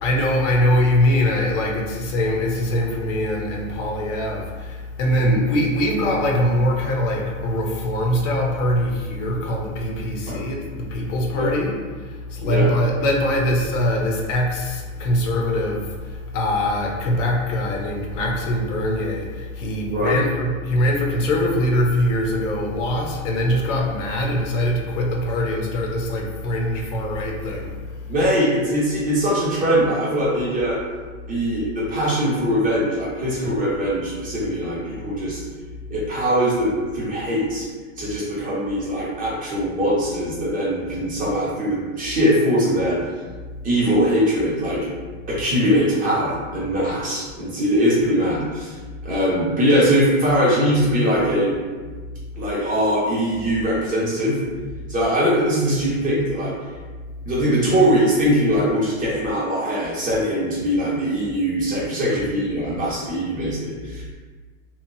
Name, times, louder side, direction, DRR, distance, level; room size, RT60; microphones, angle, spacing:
voice 1, 0.0-27.8, left 1 dB, 65° left, 0 dB, 0.7 m, -22 dB
voice 2, 12.5-12.8 19.9-20.2 28.1-30.8 31.3-35.4 35.9-37.7 38.0-43.0 43.6-44.9 45.3-48.8 49.0-51.6 52.4-54.4 54.9-56.5 57.2-64.1, equal, 20° right, -7 dB, 0.5 m, -21 dB
2.8 x 2.2 x 2.6 m, 1.4 s
supercardioid pair, 140°, 40 cm